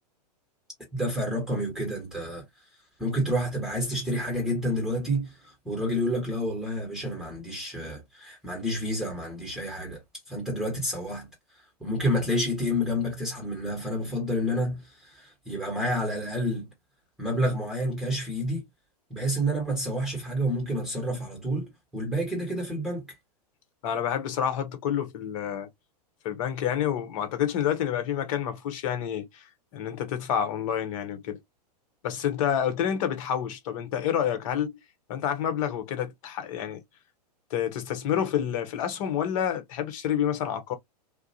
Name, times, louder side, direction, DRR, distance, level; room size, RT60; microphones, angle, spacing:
voice 1, 0.9-2.4 3.0-10.0 10.3-11.3 11.8-16.7 17.2-18.7 19.1-23.1, equal, ahead, 1.3 m, -29 dB
voice 2, 23.8-25.7 26.2-29.4 29.7-31.4 32.0-34.7 35.1-36.8 37.5-40.7, left 9 dB, 55° left, 1.0 m, -28 dB
2.4 x 2.2 x 2.7 m
hypercardioid pair, 105°, 21 cm